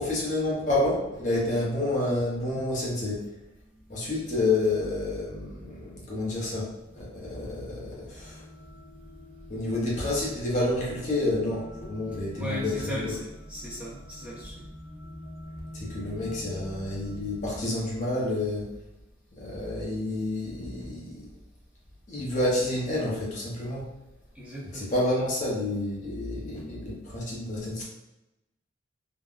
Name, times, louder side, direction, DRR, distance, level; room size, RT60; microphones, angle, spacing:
voice 1, 0.0-3.2 3.9-8.4 9.5-13.1 15.7-18.6 19.4-21.3 22.1-23.8 24.7-27.8, left 2 dB, 40° left, -5 dB, 0.7 m, -29 dB
sound 1, 8.1-17.6, equal, 80° right, 0.9 m, -45 dB
voice 2, 12.3-14.6 24.3-24.9, equal, 5° right, -8 dB, 0.7 m, -37 dB
3.5 x 2.2 x 2.3 m, 0.98 s
head